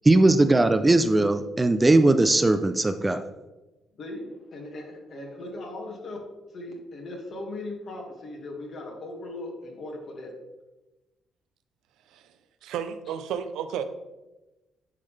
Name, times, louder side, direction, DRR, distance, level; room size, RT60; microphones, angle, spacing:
voice 1, 0.0-3.2, right 2 dB, 20° right, 9 dB, 0.4 m, -19 dB
voice 2, 4.0-6.2 6.5-10.3, left 2 dB, 55° left, 0 dB, 1.8 m, -38 dB
voice 3, 12.6-13.8, right 8 dB, 85° right, 10 dB, 0.5 m, -32 dB
10.5 x 3.8 x 3.3 m, 1.1 s
cardioid pair, 90°, 0 cm